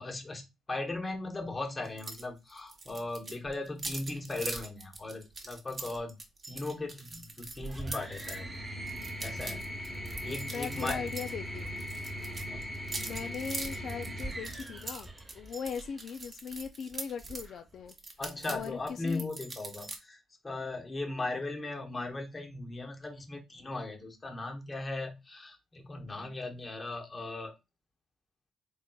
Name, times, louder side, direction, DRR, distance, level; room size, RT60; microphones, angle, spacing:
voice 1, 0.0-6.2 6.5-8.4 9.2-9.6 10.2-11.0 12.5-12.7 18.2-20.2 20.4-27.5, left 2 dB, 25° left, 1.0 m, -38 dB
Misc Lock Picks, 2.0-2.2 2.5-8.4 8.9-11.3 11.6-17.5 17.9-20.0, right 3 dB, 30° right, 1.1 m, -42 dB
sound 1, 7.6-16.0 17.2-17.9, equal, 10° right, 1.2 m, -40 dB
voice 2, 10.5-11.8 13.0-17.9 18.5-19.3, left 7 dB, 65° left, 0.3 m, -39 dB
3.9 x 3.5 x 2.3 m
cardioid pair, 90°, 0 cm